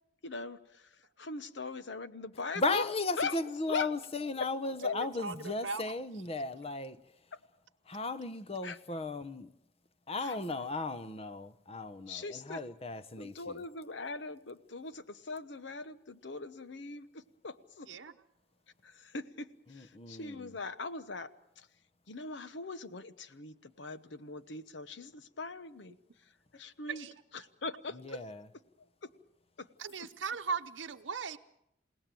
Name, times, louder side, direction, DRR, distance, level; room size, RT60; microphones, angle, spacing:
voice 1, 0.2-2.9 3.1-3.4 3.7-3.9 4.4-4.5 4.8-5.0 7.3-7.4 8.6-8.8 10.2-10.4 12.1-12.6 13.2-17.9 18.8-21.3 21.6-21.7 22.1-26.0 26.5-27.1 27.3-28.2 29.0-29.1 29.6-29.7, left 3 dB, 75° left, 1.0 m, -40 dB
voice 2, 2.6-7.0 7.9-9.5 10.1-13.6 19.7-20.5 28.0-28.5, left 3 dB, 35° left, 0.9 m, -36 dB
voice 3, 4.8-5.8 17.9-18.1 26.9-27.1 29.8-31.4, right 5 dB, 85° right, 0.8 m, -38 dB
28.5 x 18.0 x 7.6 m
head